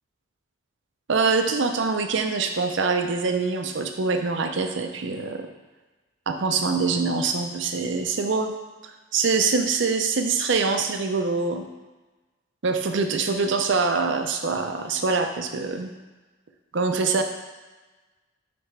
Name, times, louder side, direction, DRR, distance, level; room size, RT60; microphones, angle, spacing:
voice 1, 1.1-5.5 6.3-8.5 8.8-11.6 12.6-15.9 16.7-17.2, right 4 dB, 60° right, 6 dB, 0.5 m, -24 dB
9.3 x 3.4 x 3.3 m, 1.2 s
head